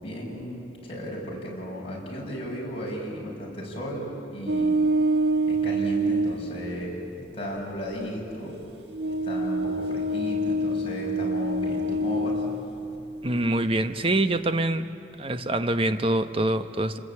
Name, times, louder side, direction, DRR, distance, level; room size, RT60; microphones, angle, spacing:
voice 1, 0.0-4.8 5.5-7.0 7.3-8.6 9.1-12.4, equal, 30° left, -3 dB, 6.2 m, -35 dB
sound 1, 4.5-6.5 7.6-7.7 8.9-12.7, right 1 dB, 65° right, 1.9 m, -26 dB
voice 2, 13.2-14.8 15.2-17.0, right 1 dB, 30° right, 9 dB, 0.9 m, -25 dB
29.0 x 20.5 x 8.5 m, 2.8 s
head